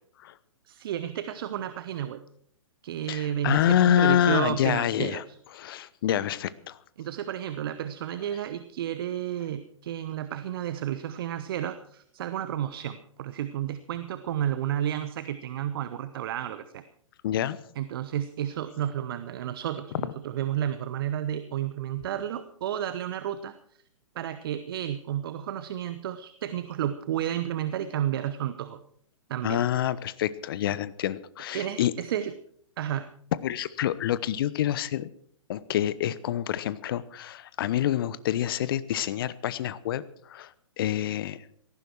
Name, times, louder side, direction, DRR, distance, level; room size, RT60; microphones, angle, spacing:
voice 1, 0.7-2.2 2.8-5.2 7.0-16.8 17.8-23.5 24.1-28.8 29.3-29.6 31.5-32.3 32.8-33.1, right 11 dB, 45° right, 12 dB, 0.9 m, -31 dB
voice 2, 3.1-5.2 5.5-6.8 17.2-17.6 29.4-31.9 33.4-35.1 35.5-40.0 40.3-40.5 40.8-41.4, left 11 dB, 45° left, 17 dB, 0.9 m, -27 dB
17.5 x 15.0 x 4.6 m, 0.64 s
figure-of-eight pair, 115°, 16 cm